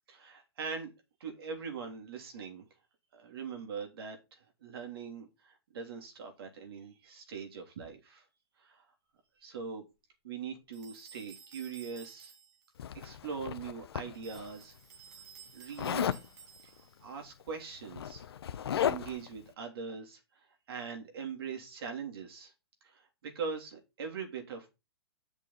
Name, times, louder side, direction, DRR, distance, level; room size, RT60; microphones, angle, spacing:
voice 1, 0.1-0.9 1.2-2.7 3.1-8.2 8.6-8.8 9.4-9.8 10.2-12.3 12.9-14.7 15.5-16.2 16.6-16.7 17.0-18.3 18.9-22.5 22.8-24.7, right 5 dB, 65° right, 3.4 m, -42 dB
sound 1, 10.7-12.7 14.1-17.0, right 7 dB, 40° right, 2.4 m, -54 dB
Zipper (clothing), 12.8-14.5 15.8-16.3 17.4-17.5 17.8-19.3, left 9 dB, 75° left, 0.8 m, -34 dB
8.6 x 6.1 x 4.1 m
hypercardioid pair, 130°, 13 cm